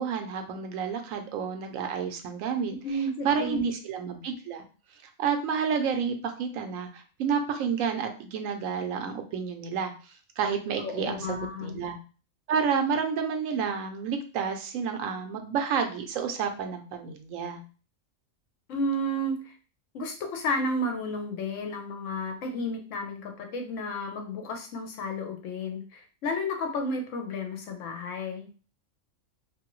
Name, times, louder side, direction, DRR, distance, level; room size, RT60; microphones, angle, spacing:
voice 1, 0.0-2.7 3.2-4.6 5.2-9.9 10.4-11.9 12.5-17.6, right 6 dB, 90° right, 5 dB, 1.0 m, -30 dB
voice 2, 2.8-3.6 10.8-11.9 18.7-19.5 19.9-28.5, left 1 dB, 75° left, 4 dB, 1.0 m, -32 dB
2.7 x 2.6 x 2.9 m, 0.37 s
omnidirectional pair, 1.4 m